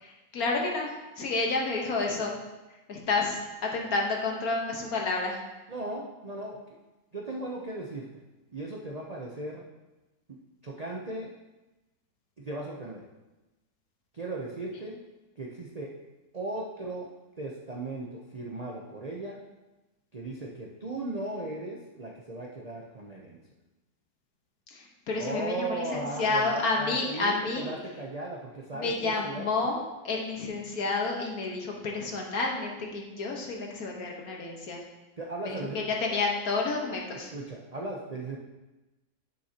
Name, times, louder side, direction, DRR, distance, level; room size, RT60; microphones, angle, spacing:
voice 1, 0.0-2.4 2.9-5.4 24.7-27.7 28.7-29.8 30.0-34.8 35.4-37.3, left 3 dB, 60° left, 0 dB, 1.6 m, -30 dB
voice 2, 5.7-6.8 7.1-8.1 8.5-9.6 10.3-10.4 10.6-11.3 12.4-13.0 14.1-15.0 15.4-15.9 16.3-17.1 17.4-19.4 20.1-23.4 25.2-29.5 35.2-35.8 37.3-38.4, right 2 dB, 75° right, -2 dB, 0.3 m, -37 dB
9.6 x 6.7 x 2.9 m, 1.1 s
omnidirectional pair, 1.9 m